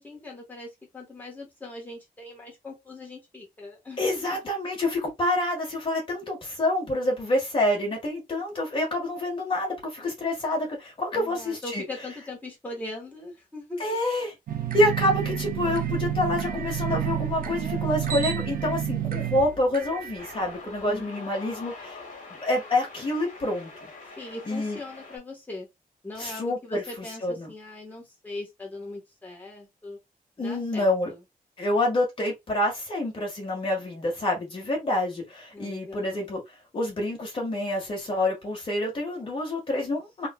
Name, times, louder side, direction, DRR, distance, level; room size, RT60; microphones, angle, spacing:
voice 1, 0.0-4.4 11.1-13.8 20.8-21.3 24.2-25.7 26.0-30.0 30.4-31.2 35.5-36.3, left 2 dB, 10° left, 1.3 m, -40 dB
voice 2, 4.0-11.8 13.8-14.3 14.7-22.0 22.3-23.9 24.5-24.8 26.2-27.5 30.4-31.1 31.6-36.4 36.7-40.3, left 1 dB, 35° left, 1.5 m, -27 dB
sound 1, 14.5-21.0, right 10 dB, 70° right, 0.5 m, -30 dB
sound 2, 20.2-25.2, left 3 dB, 60° left, 1.3 m, -44 dB
3.7 x 2.5 x 2.3 m
wide cardioid pair, 170°, 15 cm